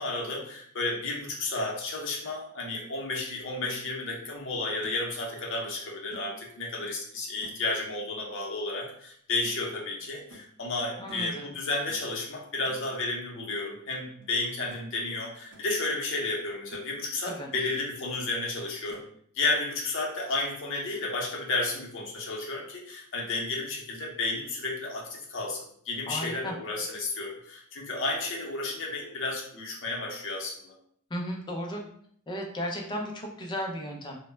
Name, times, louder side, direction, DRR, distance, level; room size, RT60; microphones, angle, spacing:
voice 1, 0.0-19.0 19.3-30.7, left 2 dB, 60° left, -2 dB, 0.6 m, -32 dB
sound 1, 3.6-3.8 4.3-4.4 4.8-5.1 6.1-6.3 7.4-7.7 9.4-9.6 10.3-10.5 11.1-11.3 11.9-12.1 12.6-12.8 14.2-14.3 14.7-15.0 15.3-15.7 16.2-16.3 16.7-17.0 17.3-17.7 18.9-19.1, right 1 dB, 75° right, 0.5 m, -50 dB
voice 2, 11.0-11.5 17.3-17.5 26.1-26.5 31.1-31.8 32.3-34.2, equal, 20° left, 0 dB, 0.4 m, -35 dB
2.1 x 2.0 x 3.1 m, 0.63 s
head